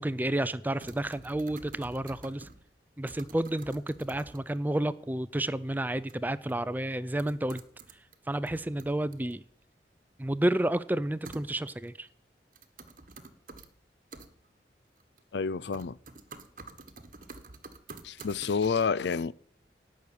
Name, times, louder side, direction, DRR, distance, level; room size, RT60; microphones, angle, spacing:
voice 1, 0.0-2.5 3.0-7.6 8.3-9.4 10.2-12.1, right 1 dB, 10° right, 0.4 m, -30 dB
sound 1, 0.8-2.7 3.1-4.6 6.1-6.2 6.5-6.6 7.2-8.2 8.5-9.3 11.3-11.9 12.5-13.7 14.1-14.3 15.0-15.4 15.7-18.7, right 3 dB, 50° right, 1.3 m, -48 dB
voice 2, 15.3-16.0 18.0-19.3, left 5 dB, 75° left, 0.5 m, -29 dB
17.5 x 6.4 x 8.6 m
head